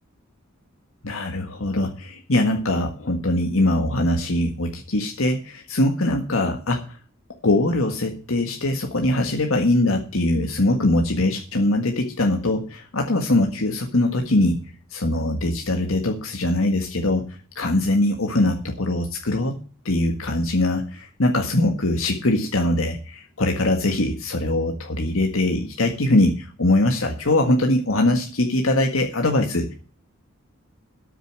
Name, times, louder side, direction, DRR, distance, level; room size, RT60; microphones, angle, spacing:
voice 1, 1.0-7.0 7.4-14.6 14.9-19.6 19.9-29.7, left 1 dB, 80° left, 3 dB, 1.7 m, -22 dB
13.0 x 6.8 x 7.5 m, 0.39 s
head